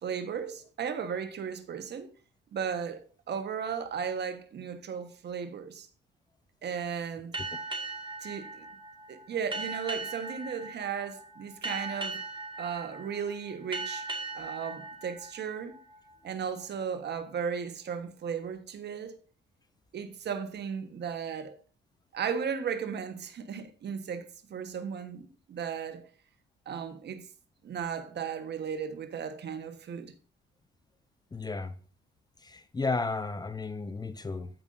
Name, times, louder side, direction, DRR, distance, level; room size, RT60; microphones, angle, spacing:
voice 1, 0.0-2.1 2.5-5.9 6.6-7.3 8.2-8.7 9.1-12.2 12.6-14.1 14.3-15.8 16.2-19.2 19.9-21.6 22.1-26.0 26.7-27.2 27.6-30.1, right 7 dB, 60° right, 1.3 m, -35 dB
sound 1, 7.3-16.5, right 3 dB, 25° right, 1.9 m, -39 dB
voice 2, 31.3-31.7 32.4-34.5, left 3 dB, 20° left, 0.6 m, -33 dB
15.0 x 5.3 x 2.6 m
cardioid pair, 90°, 20 cm